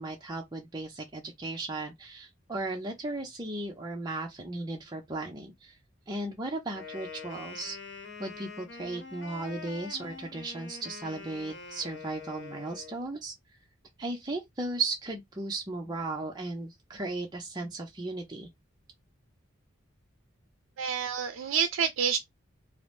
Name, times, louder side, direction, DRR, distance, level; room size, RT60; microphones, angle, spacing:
voice 1, 0.0-5.8 6.1-7.8 8.2-13.3 14.0-18.5, right 2 dB, 20° right, 0.5 m, -36 dB
Wind instrument woodwind instrument, 6.7-13.0, left 4 dB, 60° left, 0.9 m, -44 dB
voice 2, 20.8-22.2, right 7 dB, 80° right, 0.4 m, -28 dB
2.7 x 2.0 x 3.2 m
head